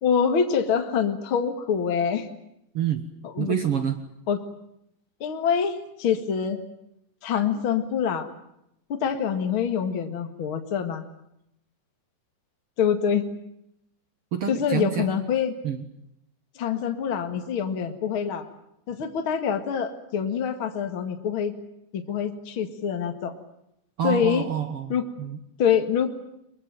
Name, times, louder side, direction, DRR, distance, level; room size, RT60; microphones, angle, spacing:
voice 1, 0.0-2.3 3.2-3.6 4.3-4.4 5.2-6.6 7.2-8.3 8.9-11.1 12.8-13.2 14.5-15.6 16.6-18.5 18.9-21.5 21.9-23.4 24.0-24.4 24.9-25.0 25.6-26.1, left 7 dB, 45° left, 6 dB, 2.4 m, -25 dB
voice 2, 2.7-3.0 3.4-4.0 14.3-15.2 15.6-15.9 24.0-25.4, right 9 dB, 55° right, 9 dB, 2.0 m, -27 dB
23.5 x 22.5 x 9.1 m, 0.80 s
omnidirectional pair, 3.6 m